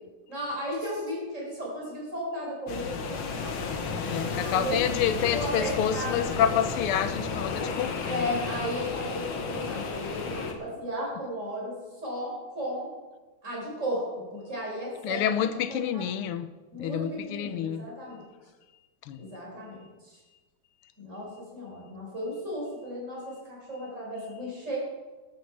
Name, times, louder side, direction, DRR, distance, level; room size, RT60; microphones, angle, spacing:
voice 1, 0.3-3.5 4.3-6.4 8.1-12.9 13.4-14.1 14.3-16.2 16.7-18.3 19.2-20.2 21.0-24.8, equal, 35° right, -4 dB, 5.2 m, -35 dB
sound 1, 2.7-10.5, left 4 dB, 70° left, 2.0 m, -33 dB
voice 2, 3.8-8.3 15.0-16.5 16.8-17.9 19.0-19.3, left 9 dB, 85° left, 12 dB, 1.7 m, -28 dB
13.5 x 11.5 x 4.7 m, 1.3 s
omnidirectional pair, 2.4 m